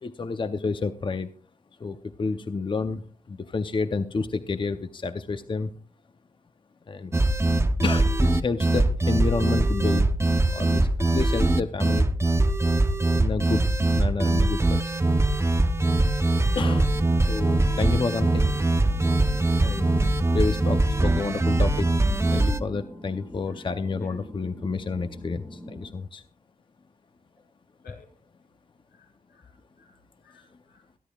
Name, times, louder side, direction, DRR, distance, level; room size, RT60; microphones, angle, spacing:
voice 1, 0.0-1.3 1.8-5.7 6.9-7.2 7.8-10.1 10.5-12.5 13.1-13.6 13.9-15.0 16.5-16.9 17.3-18.5 19.6-21.9 22.3-26.2, left 4 dB, 35° left, 10 dB, 0.6 m, -30 dB
sound 1, 7.1-22.6, right 2 dB, 15° right, 0.7 m, -22 dB
sound 2, 16.6-25.9, equal, 15° left, 1.4 m, -44 dB
voice 2, 28.9-30.0 30.2-30.8, left 5 dB, 85° left, 0 dB, 5.6 m, -54 dB
23.0 x 10.5 x 2.3 m, 0.41 s
wide cardioid pair, 100°, 15 cm